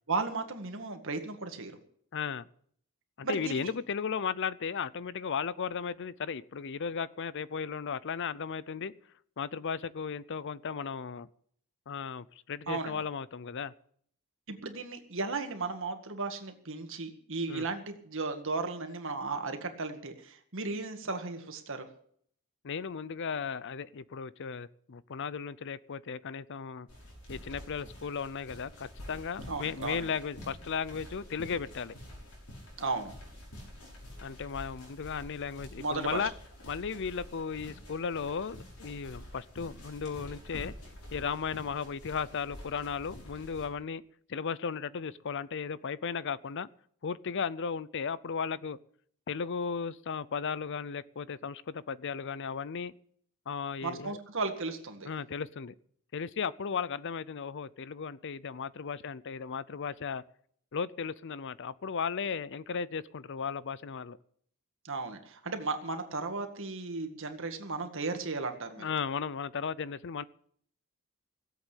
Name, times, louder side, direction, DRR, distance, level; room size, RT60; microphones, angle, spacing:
voice 1, 0.1-1.8 3.2-3.7 12.7-13.0 14.5-21.9 29.5-30.1 32.8-33.1 35.8-36.3 53.8-55.1 64.8-68.9, right 3 dB, 60° right, 6 dB, 1.9 m, -35 dB
voice 2, 2.1-2.5 3.2-8.9 9.4-11.3 11.9-13.7 17.5-17.7 22.6-26.9 27.3-31.9 34.2-36.3 36.7-40.7 41.1-44.0 44.3-46.7 47.0-48.8 49.3-52.9 53.5-54.2 55.1-55.7 56.1-60.2 60.7-64.2 68.8-70.2, left 6 dB, 55° left, 18 dB, 0.5 m, -35 dB
sound 1, 26.9-43.7, equal, 85° left, 6.3 m, -48 dB
17.0 x 8.1 x 8.4 m, 0.63 s
head